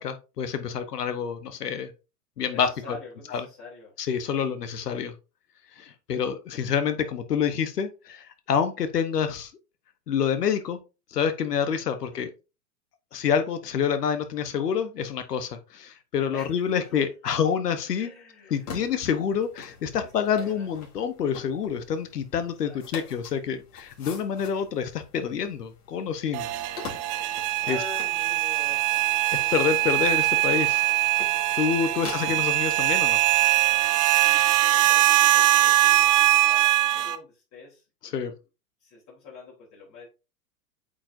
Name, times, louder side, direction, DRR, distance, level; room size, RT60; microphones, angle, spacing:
voice 1, 0.0-1.9 2.4-3.0 3.3-3.4 4.0-5.1 5.8-9.5 10.1-10.8 11.1-12.3 13.1-18.1 18.5-26.5 27.7-27.8 29.5-30.8 31.6-33.2 38.1-38.3, left 7 dB, 85° left, 1.2 m, -27 dB
voice 2, 2.5-3.9 4.3-4.4 11.9-12.2 16.3-17.4 18.0-19.0 20.0-20.7 22.6-22.8 27.6-30.0 31.7-32.1 34.2-38.3 38.8-40.1, left 3 dB, 40° left, 3.6 m, -46 dB
sound 1, 18.5-33.5, left 5 dB, 65° left, 3.5 m, -45 dB
sound 2, 26.3-37.2, right 15 dB, 25° right, 0.3 m, -22 dB
8.5 x 5.0 x 2.6 m
hypercardioid pair, 110°, 46 cm